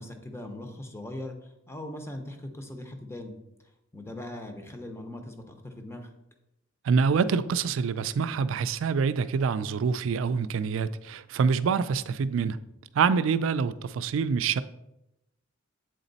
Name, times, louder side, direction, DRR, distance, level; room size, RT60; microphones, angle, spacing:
voice 1, 0.0-1.4 1.7-3.3 3.9-6.1, left 1 dB, 15° left, 0.7 m, -40 dB
voice 2, 6.8-12.6 12.9-14.6, right 5 dB, 70° right, 0.3 m, -26 dB
7.9 x 4.1 x 4.0 m
head